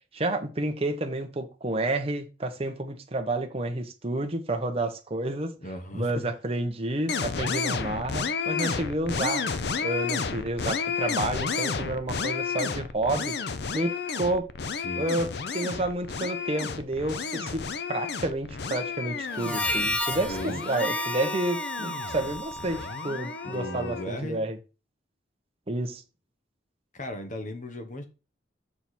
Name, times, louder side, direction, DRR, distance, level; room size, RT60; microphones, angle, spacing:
voice 1, 0.1-5.5 5.9-9.4 9.8-13.3 13.7-14.5 14.9-15.3 15.5-17.6 17.9-24.6 25.7-26.0, right 2 dB, 35° right, 1.0 m, -30 dB
voice 2, 5.6-6.3 14.7-15.3 20.1-20.6 23.4-24.5 26.9-28.1, left 1 dB, 45° left, 1.3 m, -37 dB
sound 1, 7.1-24.0, left 5 dB, 65° left, 0.6 m, -32 dB
Harmonica, 19.3-23.9, equal, 5° left, 0.6 m, -33 dB
6.0 x 4.9 x 4.3 m
head